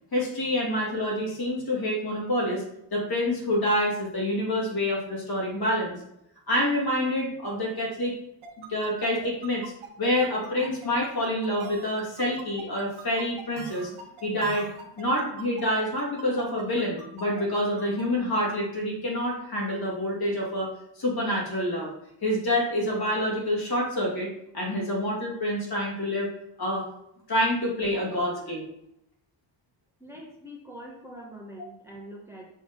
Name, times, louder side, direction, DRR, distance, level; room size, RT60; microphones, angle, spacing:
voice 1, 0.1-2.6 2.9-6.0 6.5-8.1 8.6-9.6 10.0-13.9 14.2-14.7 15.0-21.9 22.2-26.3 26.6-26.9 27.3-28.6, left 1 dB, 50° left, -3 dB, 2.3 m, -27 dB
sound 1, 8.4-18.0, right 4 dB, 90° right, 1.2 m, -43 dB
voice 2, 30.0-32.5, equal, 5° right, -3 dB, 1.4 m, -44 dB
5.5 x 3.5 x 5.1 m, 0.79 s
cardioid pair, 75°, 48 cm